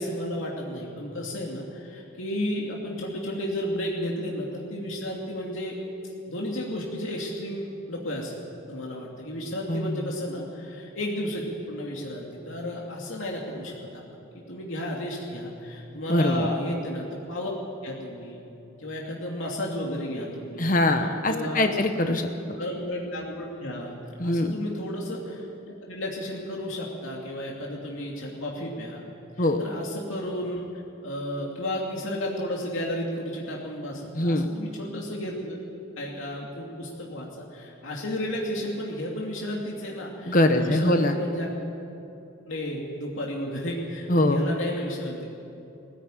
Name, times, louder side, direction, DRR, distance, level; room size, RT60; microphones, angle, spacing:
voice 1, 0.0-5.8 6.3-8.3 8.7-14.0 14.3-17.5 17.8-18.4 18.8-21.8 22.6-29.0 29.4-35.6 36.0-41.6 42.5-45.3, left 1 dB, 80° left, -2 dB, 2.6 m, -33 dB
voice 2, 16.1-16.5 20.6-22.6 24.2-24.5 29.4-29.6 34.2-34.5 40.3-41.1 44.1-44.4, left 1 dB, 40° left, 6 dB, 1.2 m, -23 dB
19.5 x 15.5 x 9.1 m, 2.8 s
head